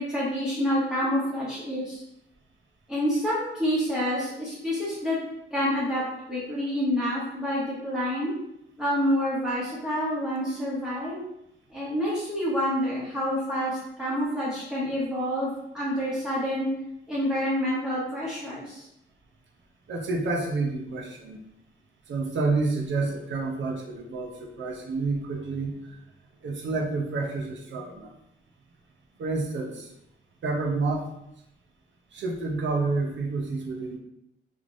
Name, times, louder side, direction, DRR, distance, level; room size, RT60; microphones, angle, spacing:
voice 1, 0.0-2.0 2.9-5.2 5.5-6.0 6.3-8.3 8.8-11.2 11.7-16.7 17.1-18.9, equal, 5° right, -8 dB, 0.9 m, -28 dB
voice 2, 19.9-21.4 22.1-25.8 26.4-28.1 29.2-29.9 30.4-31.0 32.1-34.0, right 3 dB, 65° right, 0 dB, 0.7 m, -29 dB
3.5 x 3.3 x 2.5 m, 0.82 s
wide cardioid pair, 130°, 21 cm